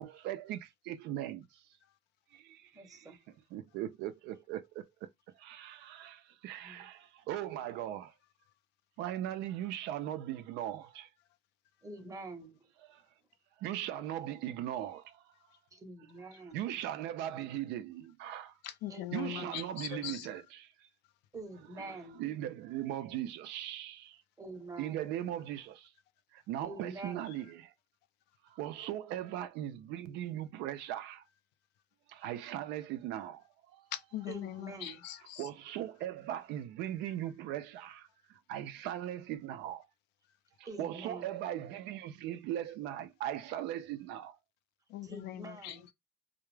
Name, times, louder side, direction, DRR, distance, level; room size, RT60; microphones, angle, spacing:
voice 1, 0.0-1.6 2.3-3.1 3.5-4.9 5.4-8.1 9.0-11.1 12.9-13.0 13.6-15.2 16.5-18.5 19.1-20.7 21.8-24.2 24.8-25.9 26.3-27.7 28.4-31.2 32.1-33.8 35.4-39.8 40.6-44.4, right 12 dB, 85° right, 0.4 m, -39 dB
voice 2, 2.7-3.2 6.6-6.9 11.8-12.7 15.7-16.6 18.9-19.6 21.3-22.3 24.4-25.0 26.6-27.3 34.3-35.0 40.6-41.4 45.0-45.9, right 2 dB, 20° right, 0.7 m, -46 dB
voice 3, 18.6-20.3 33.9-35.5 44.9-45.9, left 13 dB, 85° left, 0.4 m, -41 dB
2.3 x 2.1 x 3.1 m
cardioid pair, 110°, 17 cm